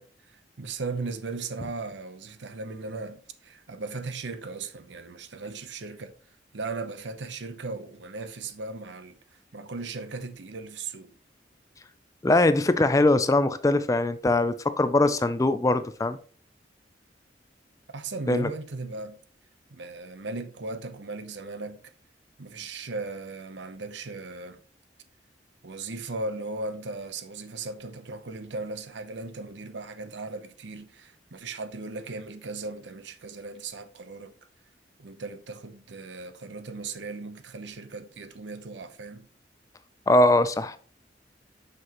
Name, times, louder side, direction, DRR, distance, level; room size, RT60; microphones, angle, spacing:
voice 1, 0.0-6.1 6.5-11.1 17.9-19.2 19.7-21.9 22.4-24.6 25.6-34.3 35.0-39.3, right 3 dB, 75° right, 0.8 m, -37 dB
voice 2, 12.2-16.2 18.3-18.5 40.1-40.8, left 2 dB, 15° left, 0.3 m, -21 dB
7.6 x 6.0 x 3.0 m
head